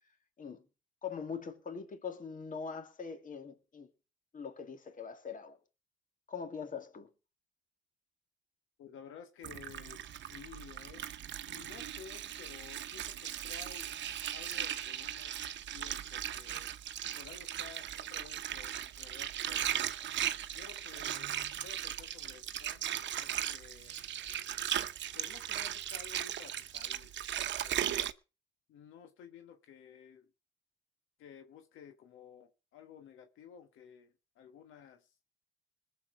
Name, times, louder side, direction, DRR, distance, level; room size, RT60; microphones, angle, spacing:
voice 1, 1.0-3.9 4.3-5.6 6.3-7.1, left 6 dB, 40° left, 2.3 m, -42 dB
voice 2, 8.8-11.1 11.4-14.0 14.3-15.4 15.7-16.7 17.2-19.8 20.5-22.9 23.1-24.0 25.1-27.9 28.7-30.3 31.2-35.2, left 8 dB, 85° left, 1.3 m, -54 dB
Water, 9.4-28.1, right 11 dB, 65° right, 0.9 m, -38 dB
20.5 x 7.3 x 4.8 m
cardioid pair, 90°, 20 cm